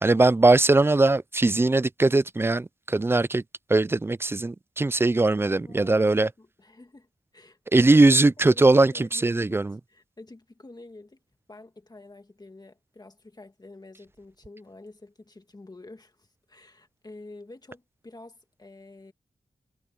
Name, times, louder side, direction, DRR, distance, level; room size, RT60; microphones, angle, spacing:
voice 1, 0.0-3.4 3.7-6.3 7.7-9.8, right 2 dB, 15° right, 0.3 m, -20 dB
voice 2, 5.7-7.1 7.3-8.0 8.5-9.6 9.9-11.2 11.5-19.1, left 2 dB, 25° left, 2.0 m, -48 dB
wide cardioid pair, 150°, 16 cm